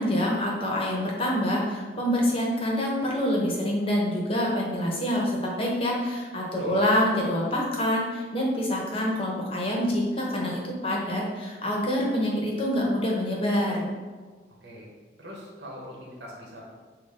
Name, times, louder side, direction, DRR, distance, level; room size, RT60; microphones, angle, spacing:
voice 1, 0.0-13.9, equal, 30° left, -2 dB, 0.8 m, -26 dB
voice 2, 6.5-6.8 14.6-14.9 15.2-16.6, equal, 75° right, -3 dB, 1.3 m, -43 dB
6.3 x 2.3 x 3.6 m, 1.4 s
head